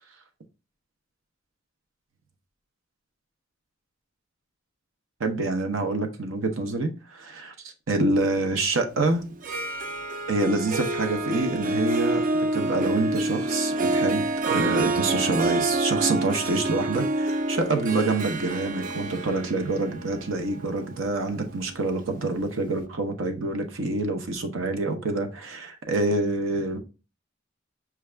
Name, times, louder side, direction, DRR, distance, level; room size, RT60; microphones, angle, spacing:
voice 1, 5.2-7.5 7.9-9.2 10.3-26.8, right 2 dB, 85° right, 0.7 m, -27 dB
Harp, 9.3-22.2, right 2 dB, 40° right, 0.4 m, -27 dB
6.0 x 2.3 x 3.3 m
head